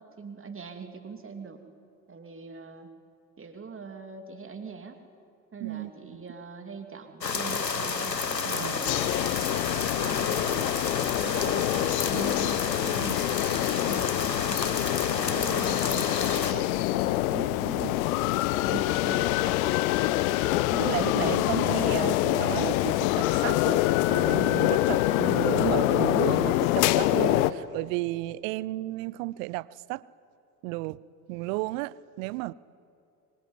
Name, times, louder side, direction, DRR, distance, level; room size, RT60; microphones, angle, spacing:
voice 1, 0.0-1.6 2.1-2.9 3.4-5.0 5.5-8.2 8.6-9.3 10.0-10.8 11.2-13.5 13.7-18.1 18.6-19.8 25.1-25.6 27.5-27.6, right 5 dB, 25° right, 5 dB, 2.8 m, -42 dB
voice 2, 5.6-6.2 8.4-8.8 20.3-30.0 30.6-31.0 31.3-32.5, right 20 dB, 55° right, 22 dB, 0.8 m, -33 dB
sound 1, 7.2-16.5, left 5 dB, 85° left, 1.1 m, -30 dB
sound 2, 8.8-27.5, left 16 dB, 60° left, 0.9 m, -25 dB
24.5 x 24.5 x 9.6 m, 2.6 s
figure-of-eight pair, 55°, 48 cm